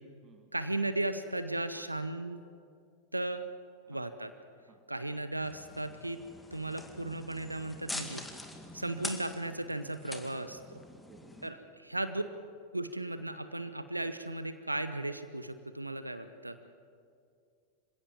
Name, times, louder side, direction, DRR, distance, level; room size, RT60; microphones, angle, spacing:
voice 1, 0.5-2.4 3.1-3.5 3.9-4.3 4.9-6.2 6.5-8.3 8.7-10.8 11.4-12.2 12.7-16.6, right 2 dB, 85° right, 11 dB, 0.8 m, -36 dB
sound 1, 5.4-11.5, left 1 dB, 5° left, 2.1 m, -44 dB
voice 2, 11.0-11.9, right 5 dB, 25° right, 4 dB, 1.9 m, -62 dB
26.5 x 16.5 x 7.4 m, 2.4 s
figure-of-eight pair, 90°, 0 cm